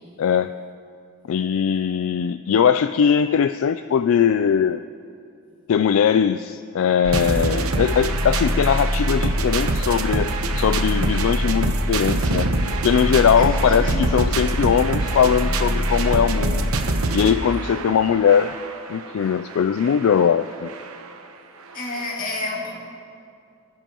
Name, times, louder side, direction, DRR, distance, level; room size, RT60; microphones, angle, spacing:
voice 1, 0.2-0.5 1.3-4.8 5.7-12.5 12.8-16.7 17.1-18.6 18.9-20.7, left 7 dB, 65° left, 11 dB, 0.3 m, -20 dB
sound 1, 7.0-21.1 21.7-21.8 22.0-22.1, right 1 dB, 80° right, 0.9 m, -24 dB
voice 2, 13.4-14.0 21.7-22.7, left 2 dB, 40° left, -3 dB, 2.2 m, -29 dB
24.5 x 10.5 x 3.0 m, 2.4 s
head